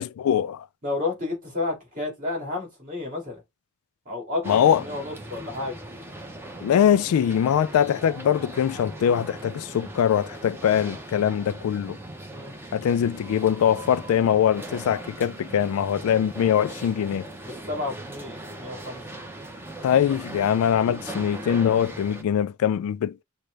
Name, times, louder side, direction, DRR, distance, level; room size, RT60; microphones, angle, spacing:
voice 1, 0.0-0.7 4.5-4.8 6.6-12.0 12.7-17.3 19.8-23.2, left 9 dB, 90° left, 0.3 m, -22 dB
voice 2, 0.8-3.4 4.1-4.5 4.8-5.8 12.3-12.5 17.4-19.0, left 3 dB, 40° right, 2.4 m, -31 dB
sound 1, 4.4-22.2, right 1 dB, 10° right, 0.7 m, -39 dB
6.3 x 2.2 x 3.2 m
head